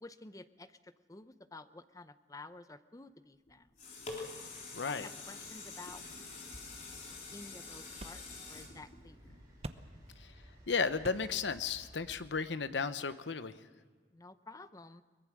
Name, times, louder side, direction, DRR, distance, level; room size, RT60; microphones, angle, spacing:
voice 1, 0.0-3.7 4.9-6.0 7.3-8.2 8.5-9.2 14.1-15.0, left 2 dB, 20° left, 12 dB, 0.6 m, -51 dB
sound 1, 3.5-9.8 10.3-10.4, left 3 dB, 40° left, 3.9 m, -46 dB
voice 2, 4.7-5.1 10.7-13.5, left 5 dB, 90° left, 12 dB, 0.9 m, -34 dB
sound 2, 5.4-12.3, equal, 20° right, 7.3 m, -60 dB
sound 3, 6.3-13.4, right 2 dB, 35° right, 0.8 m, -53 dB
22.5 x 21.0 x 6.2 m, 1.4 s
head